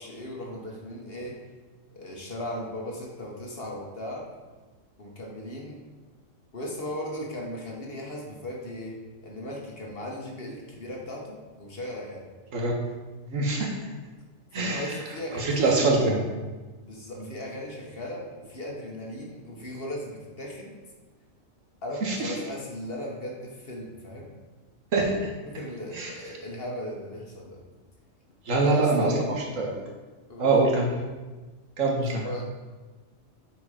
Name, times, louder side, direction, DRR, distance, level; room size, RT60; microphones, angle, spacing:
voice 1, 0.0-1.4 1.9-4.3 5.0-5.8 6.5-8.9 9.2-12.2 14.5-16.0 16.8-20.7 21.8-24.3 25.4-27.6 28.5-29.2 30.3-30.5 32.1-32.4, left 1 dB, 45° left, -1 dB, 1.6 m, -37 dB
voice 2, 13.3-13.7 14.5-14.8 15.3-16.2 22.0-22.3 24.9-25.2 25.9-26.1 28.5-29.1 29.6-29.8 30.4-30.9 31.8-32.2, right 3 dB, 75° right, 0 dB, 1.8 m, -23 dB
8.4 x 4.7 x 5.0 m, 1.3 s
omnidirectional pair, 1.4 m